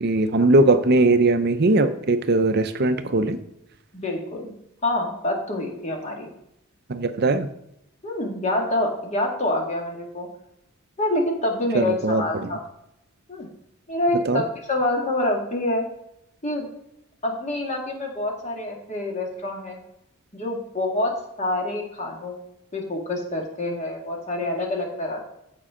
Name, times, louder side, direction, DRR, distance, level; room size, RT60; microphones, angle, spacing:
voice 1, 0.0-3.4 6.9-7.5 11.7-12.5 14.3-14.4, right 2 dB, 50° right, 10 dB, 0.6 m, -20 dB
voice 2, 3.9-4.5 4.8-6.3 8.0-10.3 11.0-12.6 13.3-13.5 13.9-15.8 16.4-16.7 17.2-19.8 20.3-21.1 21.4-22.4 22.7-25.2, left 1 dB, 35° left, 1 dB, 2.1 m, -26 dB
15.0 x 5.4 x 3.7 m, 0.80 s
head